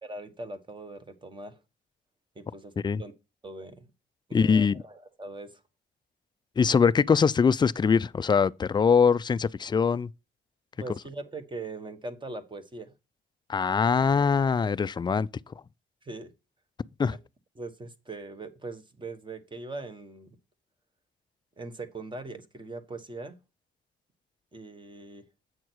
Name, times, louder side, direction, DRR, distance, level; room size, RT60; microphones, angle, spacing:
voice 1, 0.0-1.6 2.3-2.7 3.0-3.1 3.4-3.9 4.3-5.6 10.8-12.9 16.0-16.3 17.5-20.4 21.6-23.4 24.5-25.2, right 2 dB, 25° right, 1.3 m, -41 dB
voice 2, 4.3-4.8 6.6-10.1 13.5-15.3 17.0-17.2, left 6 dB, 20° left, 0.4 m, -22 dB
8.1 x 6.2 x 4.6 m
cardioid pair, 90°, 20 cm